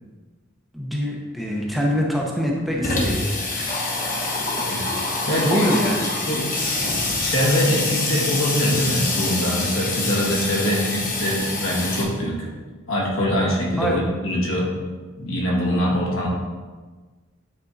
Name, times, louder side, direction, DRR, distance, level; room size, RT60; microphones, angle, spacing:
voice 1, 0.7-3.3 4.5-4.6 5.3-6.1 13.8-14.0, equal, ahead, -2 dB, 0.8 m, -24 dB
Water tap faucet / Sink (filling or washing), 1.4-1.5 1.8-1.9 2.1-12.0, left 2 dB, 40° left, 1.3 m, -25 dB
voice 2, 5.3-5.7 6.3-6.5 6.8-6.9 7.2-12.5 12.9-14.7 15.2-16.3, equal, 70° left, -4 dB, 2.0 m, -23 dB
9.4 x 4.2 x 4.0 m, 1.4 s
head